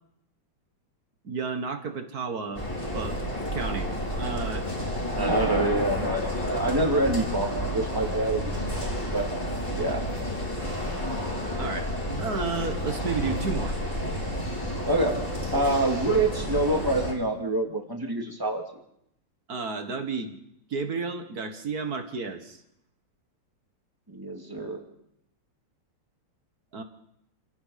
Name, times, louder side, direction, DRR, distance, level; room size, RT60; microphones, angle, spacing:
voice 1, 1.2-2.6 2.9-3.2 3.5-3.9 4.2-4.7 11.6-11.9 12.2-13.8 19.5-20.4 20.7-22.6 26.7-26.8, right 4 dB, 45° right, 7 dB, 1.9 m, -32 dB
sound 1, 2.5-17.1, equal, 15° left, 4.7 m, -30 dB
voice 2, 5.1-9.3 9.8-10.0 14.9-15.2 15.5-18.6 24.1-24.8, right 2 dB, 10° right, 1 dB, 2.6 m, -26 dB
28.0 x 16.5 x 5.8 m, 0.77 s
omnidirectional pair, 2.4 m